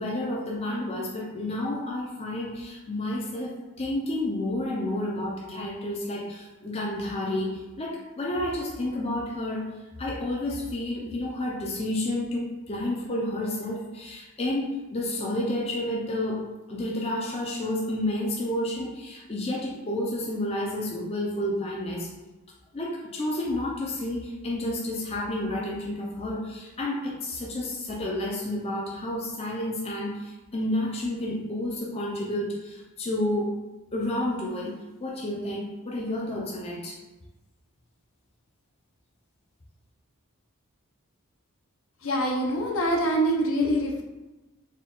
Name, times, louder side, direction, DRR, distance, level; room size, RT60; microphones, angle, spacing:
voice 1, 0.0-9.7 10.0-22.1 22.7-33.6 33.9-37.0, left 1 dB, 25° left, -2 dB, 0.5 m, -30 dB
voice 2, 42.0-44.0, equal, 65° left, 0 dB, 0.7 m, -24 dB
4.2 x 2.3 x 3.7 m, 1.1 s
head